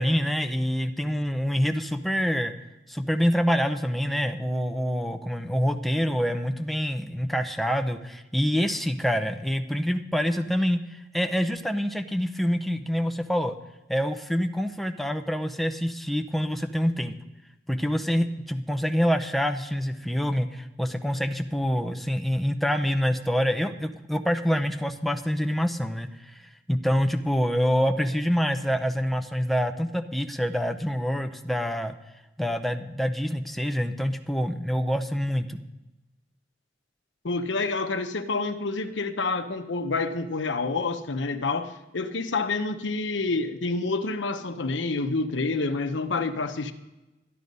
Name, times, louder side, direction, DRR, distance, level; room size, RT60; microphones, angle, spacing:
voice 1, 0.0-2.5 2.9-13.5 13.9-17.1 17.7-26.4 26.7-31.9 32.4-35.6, equal, ahead, 0.6 m, -26 dB
voice 2, 37.2-46.7, left 3 dB, 80° left, 0.9 m, -28 dB
13.0 x 11.0 x 5.4 m
head